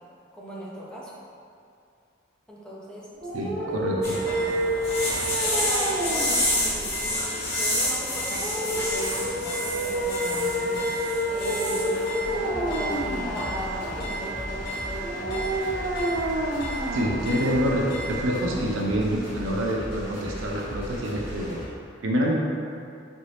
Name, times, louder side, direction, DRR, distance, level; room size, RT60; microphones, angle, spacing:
voice 1, 0.3-1.1 2.5-4.7 5.4-15.6, equal, 5° left, -6 dB, 0.5 m, -38 dB
sound 1, 3.1-18.1, right 1 dB, 40° right, 0.9 m, -30 dB
voice 2, 3.3-4.2 16.9-21.7 22.0-22.3, equal, 80° right, -1 dB, 0.5 m, -26 dB
sound 2, 4.0-18.1, left 1 dB, 50° left, 1.0 m, -30 dB
sound 3, 12.2-21.6, equal, 10° right, 1.2 m, -38 dB
3.9 x 2.6 x 3.2 m, 2.4 s
head